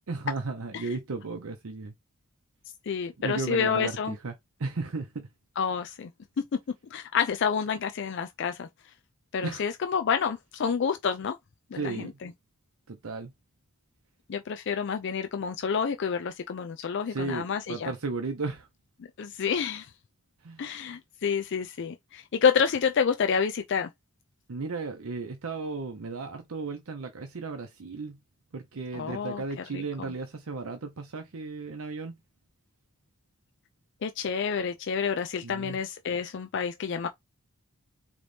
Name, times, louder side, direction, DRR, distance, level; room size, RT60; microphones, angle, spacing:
voice 1, 0.1-1.9 3.2-4.3 4.6-5.3 9.4-9.6 11.7-12.2 12.9-13.3 17.1-18.7 20.4-20.7 24.5-28.2 28.5-32.2 35.4-35.8, right 3 dB, 70° right, 0.7 m, -35 dB
voice 2, 2.9-4.1 5.6-6.1 6.9-8.7 9.3-11.4 11.8-11.9 14.3-17.9 19.2-19.9 20.6-23.9 28.9-29.4 29.7-30.1 34.0-37.1, left 6 dB, 55° left, 0.4 m, -28 dB
3.9 x 3.0 x 3.3 m
head